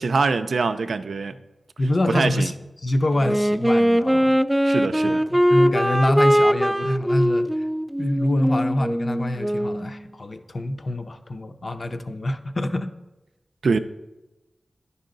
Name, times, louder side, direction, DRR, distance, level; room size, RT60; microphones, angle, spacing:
voice 1, 0.0-1.4 2.1-2.5 4.6-5.2 13.6-13.8, right 4 dB, 80° right, 0.4 m, -23 dB
voice 2, 1.8-2.5 2.8-4.3 5.0-7.5 8.0-12.9, left 1 dB, 50° left, 0.6 m, -25 dB
Wind instrument woodwind instrument, 3.2-9.9, equal, 10° right, 0.3 m, -21 dB
10.0 x 5.4 x 3.9 m
cardioid pair, 55°, 0 cm